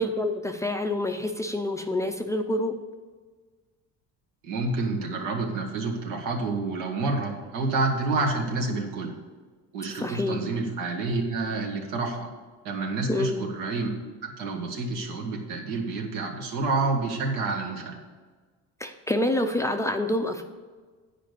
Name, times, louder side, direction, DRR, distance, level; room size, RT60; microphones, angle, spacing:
voice 1, 0.0-2.7 9.9-10.4 13.1-13.4 18.8-20.5, left 1 dB, 10° left, 5 dB, 0.4 m, -27 dB
voice 2, 4.4-9.1 9.7-12.3 12.6-13.9 14.2-18.0, right 3 dB, 85° right, 1 dB, 2.0 m, -28 dB
10.0 x 5.1 x 6.8 m, 1.4 s
cardioid pair, 145°, 32 cm